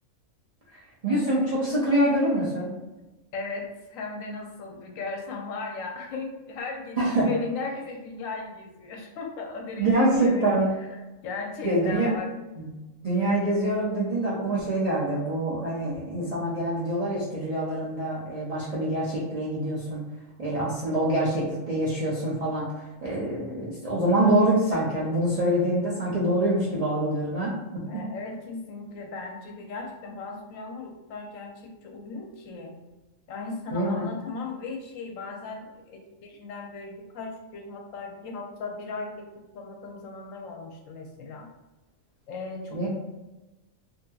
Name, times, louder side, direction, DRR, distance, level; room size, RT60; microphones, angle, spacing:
voice 1, 1.0-2.7 7.0-7.3 9.8-10.7 11.6-12.1 12.6-12.7 13.0-20.0 20.4-28.0 33.7-34.1 42.7-42.9, right 1 dB, 50° right, -7 dB, 0.5 m, -25 dB
voice 2, 3.3-10.7 11.2-12.3 27.9-32.8 33.3-41.5 42.3-42.9, left 3 dB, 80° left, 2 dB, 1.0 m, -37 dB
2.7 x 2.6 x 2.3 m, 1.1 s
omnidirectional pair, 1.4 m